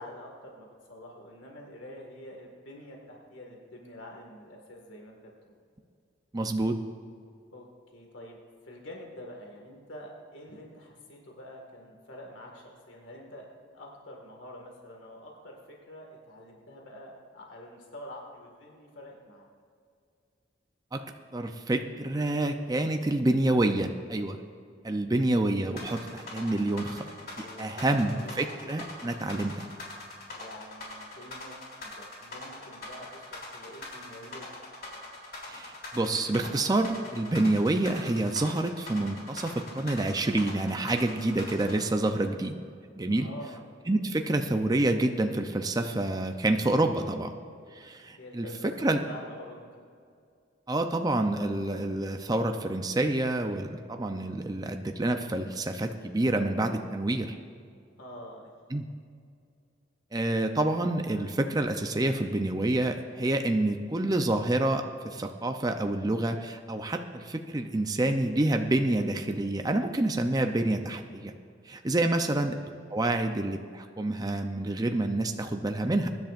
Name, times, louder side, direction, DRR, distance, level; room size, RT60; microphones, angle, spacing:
voice 1, 0.0-5.6 7.5-7.7 7.9-8.4 8.6-19.5 27.4-28.5 30.3-34.5 43.1-43.6 48.2-49.7 58.0-58.8 72.4-72.6, left 1 dB, 85° left, 0 dB, 1.9 m, -47 dB
voice 2, 6.3-6.8 20.9-21.0 21.3-24.4 24.8-27.0 27.4-29.7 35.4-42.6 43.0-43.3 43.9-47.3 47.7-48.5 48.8-49.0 50.7-57.4 58.7-58.8 60.1-71.3 71.7-72.6 72.9-76.1, right 2 dB, 20° right, 5 dB, 0.5 m, -28 dB
sound 1, 25.8-41.8, left 2 dB, 55° left, 3.1 m, -42 dB
23.0 x 10.5 x 2.5 m, 2.3 s
head